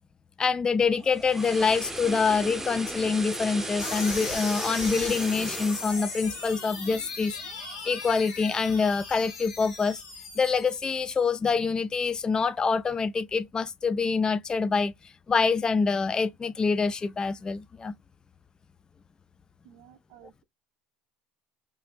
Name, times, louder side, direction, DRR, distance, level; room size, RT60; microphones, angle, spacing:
voice 1, 0.4-10.0 10.4-17.9, left 5 dB, 20° left, 0.3 m, -26 dB
sound 1, 0.9-7.1 7.5-7.7, right 2 dB, 10° right, 0.7 m, -36 dB
sound 2, 3.8-11.3, left 4 dB, 85° left, 1.5 m, -38 dB
voice 2, 19.6-20.4, right 12 dB, 70° right, 0.6 m, -54 dB
3.3 x 2.5 x 2.4 m
hypercardioid pair, 85°, 3 cm